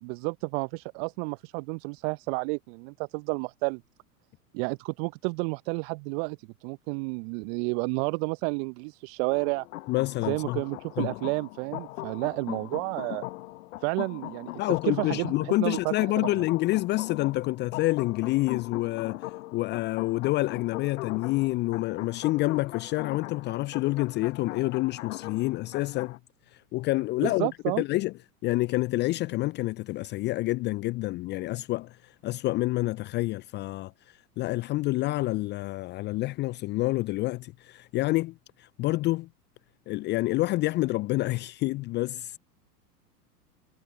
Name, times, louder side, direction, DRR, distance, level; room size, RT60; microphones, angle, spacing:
voice 1, 0.0-3.8 4.5-9.7 10.2-13.2 13.8-14.5 14.8-16.4 27.2-27.8, right 33 dB, 40° right, 0.9 m, -31 dB
sound 1, 9.3-26.2, left 17 dB, 55° left, 1.6 m, -40 dB
voice 2, 9.9-10.6 11.0-11.1 14.6-19.2 19.5-26.2 26.5-27.5 27.8-28.1 28.4-39.3 39.9-42.4, left 19 dB, 25° left, 0.5 m, -28 dB
figure-of-eight pair, 90°, 47 cm